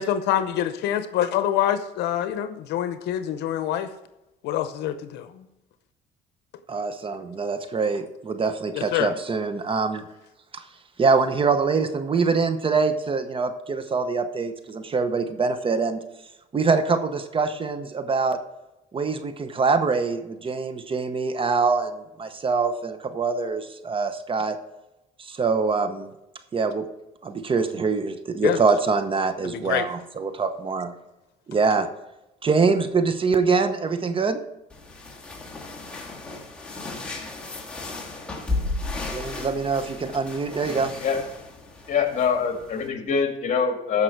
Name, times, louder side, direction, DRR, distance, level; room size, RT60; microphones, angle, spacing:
voice 1, 0.0-3.9 4.4-5.4 8.7-9.1 28.4-28.6 29.4-29.9, left 11 dB, 80° left, 10 dB, 0.7 m, -26 dB
voice 2, 6.7-10.0 10.5-10.6 11.0-16.0 16.5-18.4 18.9-24.6 25.2-26.1 26.5-26.9 27.2-30.9 31.5-31.9 32.4-34.4 39.0-40.9, right 4 dB, 30° right, 10 dB, 0.9 m, -24 dB
sound 1, 34.7-42.9, left 3 dB, 5° left, 2.5 m, -34 dB
voice 3, 41.9-44.0, left 6 dB, 45° left, 4 dB, 2.1 m, -24 dB
14.5 x 5.6 x 4.6 m, 0.93 s
cardioid pair, 110°, 17 cm